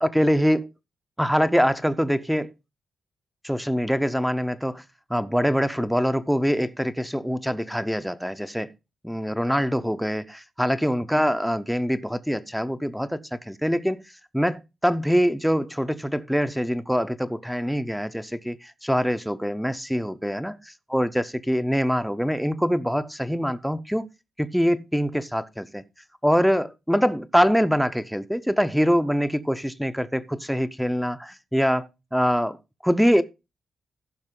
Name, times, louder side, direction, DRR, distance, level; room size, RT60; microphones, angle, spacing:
voice 1, 0.0-0.7 1.2-2.5 3.4-4.8 5.1-8.7 9.0-14.0 14.3-20.6 20.9-24.1 24.4-25.8 26.2-32.6 32.8-33.2, equal, ahead, 0.6 m, -24 dB
15.0 x 5.9 x 3.7 m
wide cardioid pair, 170°, 0 cm